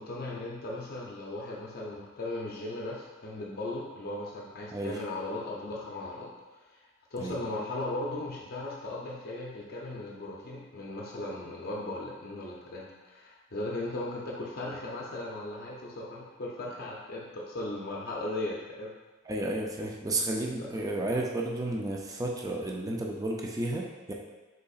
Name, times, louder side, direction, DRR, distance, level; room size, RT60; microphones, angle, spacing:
voice 1, 0.0-6.3 6.7-6.8 7.1-18.9, left 2 dB, 45° left, -3 dB, 0.6 m, -37 dB
voice 2, 19.3-24.1, right 1 dB, 15° right, -1 dB, 0.4 m, -32 dB
5.3 x 3.9 x 2.4 m, 1.2 s
head